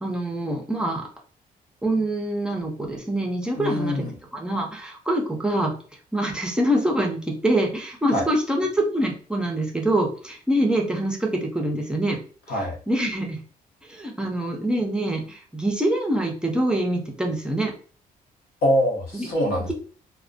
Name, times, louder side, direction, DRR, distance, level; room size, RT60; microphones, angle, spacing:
voice 1, 0.0-1.0 1.8-4.0 4.3-5.7 6.1-12.2 12.9-13.4 13.9-17.7 19.1-19.3, right 1 dB, 5° right, 0 dB, 0.4 m, -25 dB
voice 2, 3.5-4.1 8.1-8.3 12.5-12.8 18.6-19.7, equal, 90° left, 0 dB, 0.9 m, -24 dB
2.4 x 2.1 x 2.4 m, 0.40 s
cardioid pair, 155°, 15 cm